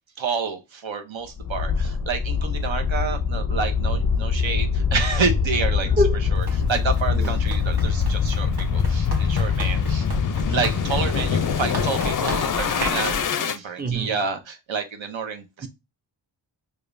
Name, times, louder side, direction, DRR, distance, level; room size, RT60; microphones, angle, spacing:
voice 1, 0.2-5.9 6.3-10.1 10.5-13.1 13.4-15.7, right 5 dB, 80° right, 0.8 m, -29 dB
sound 1, 1.4-13.6, left 6 dB, 45° left, 0.4 m, -23 dB
voice 2, 5.8-6.2 7.1-7.4 9.5-9.6 13.8-14.2 15.6-15.7, equal, 20° right, 0.5 m, -25 dB
Run, 6.3-13.3, right 1 dB, 55° right, 1.1 m, -34 dB
4.8 x 2.4 x 2.5 m
cardioid pair, 40°, 46 cm